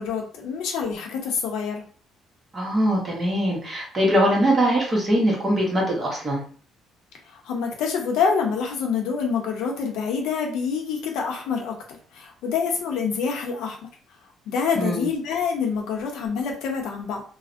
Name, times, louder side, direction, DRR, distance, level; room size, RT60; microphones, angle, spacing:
voice 1, 0.0-1.8 7.3-13.8 14.5-17.2, left 6 dB, 85° left, 1 dB, 0.7 m, -26 dB
voice 2, 2.5-6.4 14.7-15.1, equal, 25° right, -2 dB, 1.0 m, -22 dB
2.5 x 2.0 x 2.5 m, 0.43 s
cardioid pair, 135°, 0 cm